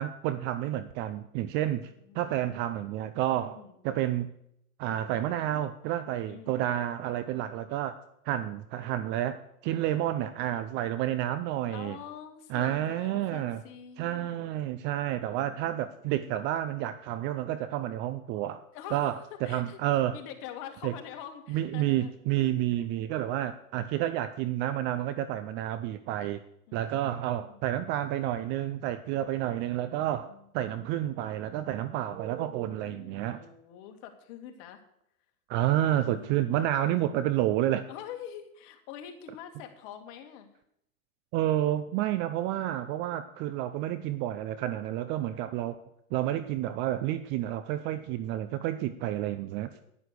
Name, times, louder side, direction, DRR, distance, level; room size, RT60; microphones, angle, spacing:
voice 1, 0.0-3.6 3.8-4.3 4.8-7.9 8.3-12.0 12.5-13.6 14.0-18.6 18.9-20.2 20.8-20.9 21.5-26.4 26.7-30.3 30.5-33.4 35.5-37.8 41.3-45.8 46.1-49.7, right 13 dB, 25° right, 12 dB, 0.4 m, -30 dB
voice 2, 1.6-2.3 3.3-3.8 6.3-6.6 7.3-7.6 11.7-14.5 15.3-15.9 18.7-19.8 20.1-22.5 22.8-22.9 26.7-27.6 30.1-30.4 31.8-34.8 36.0-36.7 37.9-40.5 48.3-49.5 49.7-49.8, left 9 dB, 45° left, 5 dB, 2.3 m, -46 dB
10.0 x 10.0 x 6.6 m, 0.75 s
hypercardioid pair, 110°, 44 cm